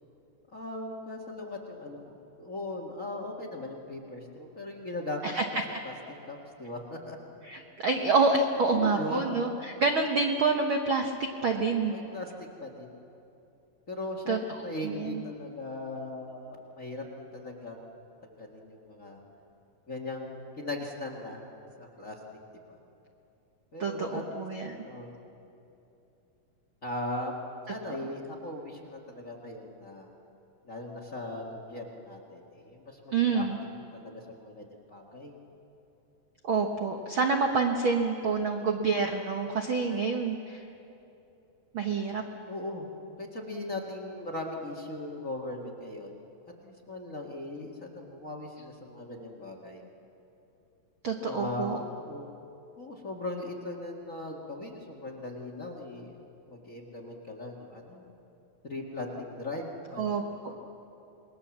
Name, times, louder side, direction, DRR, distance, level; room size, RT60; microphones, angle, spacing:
voice 1, 0.5-5.3 5.8-5.9 6.3-7.2 8.6-9.3 11.9-12.3 12.6-13.0 13.9-17.9 18.2-19.2 19.9-21.4 21.8-22.2 22.7-22.8 23.7-24.2 24.6-25.3 26.8-27.4 27.7-30.1 30.6-33.4 33.8-35.3 37.1-37.2 38.4-38.7 39.9-40.0 42.5-42.9 43.2-46.2 46.6-49.8 51.2-52.3 52.8-56.1 56.5-58.1 58.6-60.0 60.5-60.6, left 2 dB, 30° left, 2 dB, 1.5 m, -39 dB
voice 2, 7.5-11.1 11.4-11.9 14.3-15.2 23.8-24.8 33.1-33.6 36.4-40.6 41.7-42.2 51.0-51.8 60.0-60.2, right 4 dB, 85° right, 3 dB, 1.1 m, -27 dB
27.5 x 21.0 x 7.3 m, 2.8 s
omnidirectional pair, 4.2 m